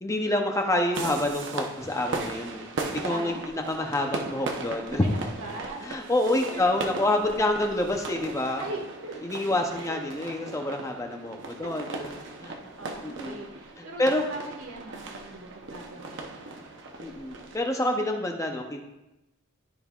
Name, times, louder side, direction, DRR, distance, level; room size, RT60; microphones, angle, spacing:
voice 1, 0.0-2.7 2.9-5.0 5.8-8.6 9.2-12.1 12.5-12.6 13.0-13.4 13.8-14.2 17.0-18.8, left 1 dB, 15° left, 3 dB, 0.6 m, -27 dB
sound 1, 0.9-17.6, right 3 dB, 55° right, 0.8 m, -38 dB
voice 2, 3.1-3.5 5.0-7.0 8.6-9.1 9.7-10.0 11.6-11.7 12.8-14.0 14.3-16.6, right 2 dB, 75° right, 0 dB, 1.7 m, -40 dB
12.0 x 5.3 x 2.4 m, 0.96 s
head